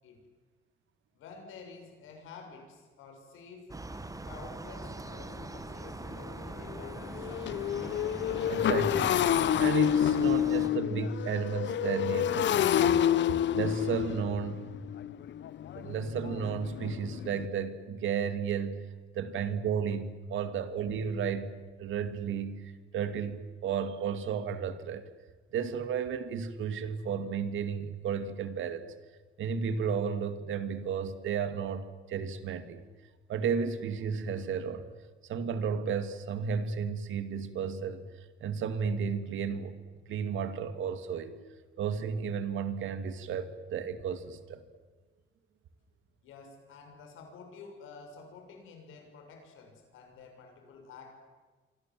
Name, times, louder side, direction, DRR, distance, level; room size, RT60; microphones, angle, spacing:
voice 1, 1.1-7.6 46.2-51.2, left 4 dB, 90° left, 4 dB, 6.6 m, -51 dB
sound 1, 3.7-10.7, right 2 dB, 15° right, 1.6 m, -42 dB
Motorcycle, 4.8-4.9 5.4-5.6 5.9-17.5, left 10 dB, 65° left, 1.0 m, -29 dB
voice 2, 8.5-9.2 9.6-12.9 13.5-14.6 15.7-18.8 19.1-25.1 25.5-28.9 29.4-32.8 33.3-34.9 35.3-38.0 38.4-39.8 40.1-41.4 41.8-44.6, right 6 dB, 75° right, 10 dB, 2.3 m, -33 dB
28.0 x 24.5 x 7.7 m, 1.4 s
cardioid pair, 90°, 20 cm